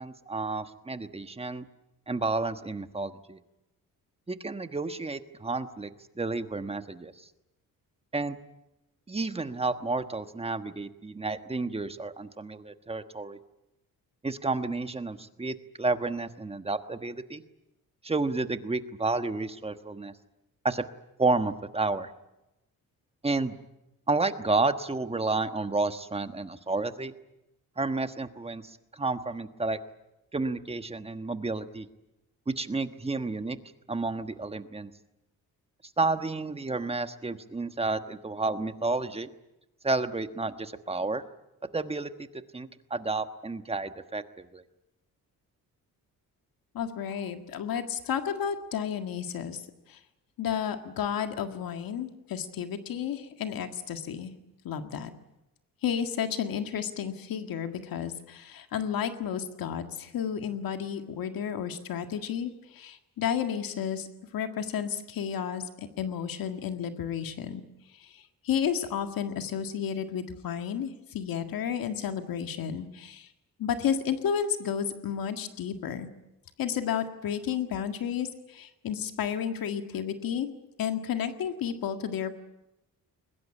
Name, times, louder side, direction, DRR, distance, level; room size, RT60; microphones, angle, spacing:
voice 1, 0.0-1.6 2.1-3.4 4.3-5.9 6.2-7.1 8.1-8.4 9.1-13.4 14.2-17.4 18.0-20.1 20.6-20.8 21.2-22.1 23.2-23.5 24.1-27.1 27.8-29.8 30.3-31.9 32.5-33.6 33.9-34.9 36.0-39.3 39.8-41.2 41.7-42.3 42.5-44.6, right 3 dB, 15° right, 9 dB, 1.3 m, -31 dB
voice 2, 46.7-49.6 49.9-50.0 50.4-54.3 54.6-55.1 55.8-64.1 64.3-67.6 67.9-73.3 73.6-76.1 76.6-80.5 80.8-82.4, left 8 dB, 75° left, 7 dB, 1.9 m, -32 dB
22.0 x 20.5 x 10.0 m, 0.93 s
cardioid pair, 130°, 35 cm